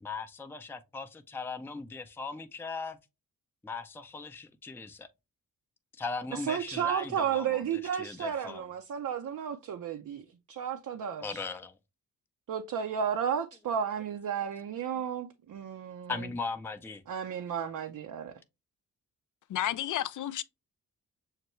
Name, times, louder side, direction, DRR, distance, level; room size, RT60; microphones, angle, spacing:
voice 1, 0.0-3.0 3.6-5.1 6.0-7.6 8.0-8.7 11.2-11.8 15.0-15.1 16.1-17.0, left 4 dB, 5° left, 0.5 m, -38 dB
voice 2, 6.3-11.5 12.5-16.1 17.1-18.3, right 8 dB, 55° right, 0.6 m, -33 dB
voice 3, 19.5-20.4, left 12 dB, 55° left, 0.5 m, -31 dB
6.5 x 2.2 x 3.0 m
supercardioid pair, 50°, 36 cm